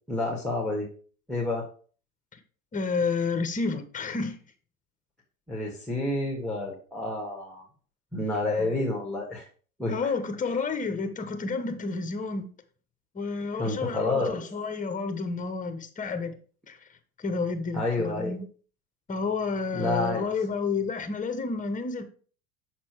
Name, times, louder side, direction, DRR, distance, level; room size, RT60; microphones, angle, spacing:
voice 1, 0.1-0.9 1.3-1.7 5.5-7.6 8.1-9.5 9.8-10.1 13.5-14.4 17.7-18.3 19.7-20.3, left 2 dB, ahead, 1.7 m, -29 dB
voice 2, 2.7-4.4 8.6-8.8 9.9-12.5 13.1-16.4 16.7-16.8 17.2-18.4 19.1-22.0, left 4 dB, 15° left, 1.0 m, -30 dB
6.4 x 4.3 x 4.6 m
hypercardioid pair, 90°, 44 cm